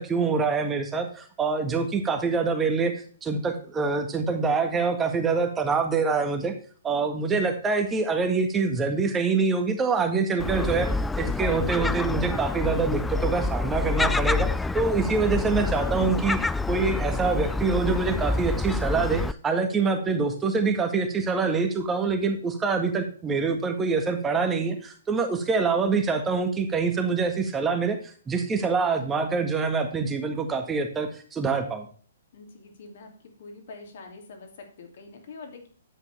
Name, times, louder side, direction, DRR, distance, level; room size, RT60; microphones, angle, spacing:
voice 1, 0.0-2.9 3.2-6.5 6.8-14.5 14.7-16.4 16.7-28.0 28.3-31.9, right 4 dB, 15° right, 5 dB, 1.7 m, -25 dB
Gull seagull, 10.4-19.3, left 3 dB, 5° left, 0.3 m, -27 dB
voice 2, 32.3-33.1 33.4-35.7, left 3 dB, 55° left, 3 dB, 2.7 m, -44 dB
10.0 x 8.0 x 3.4 m, 0.44 s
figure-of-eight pair, 120°, 0 cm